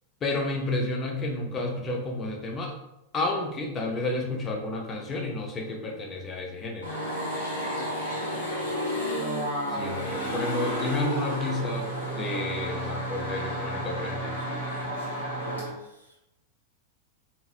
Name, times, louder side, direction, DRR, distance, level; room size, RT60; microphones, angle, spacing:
voice 1, 0.2-2.7 3.1-6.9 9.7-11.9 12.2-14.3, left 2 dB, 25° left, 1 dB, 0.6 m, -31 dB
sound 1, 6.8-15.7, equal, 75° left, 1.3 m, -31 dB
voice 2, 7.7-8.7 15.3-16.2, right 1 dB, 80° right, 0 dB, 0.6 m, -44 dB
2.9 x 2.8 x 2.4 m, 0.89 s
figure-of-eight pair, 90°, 0 cm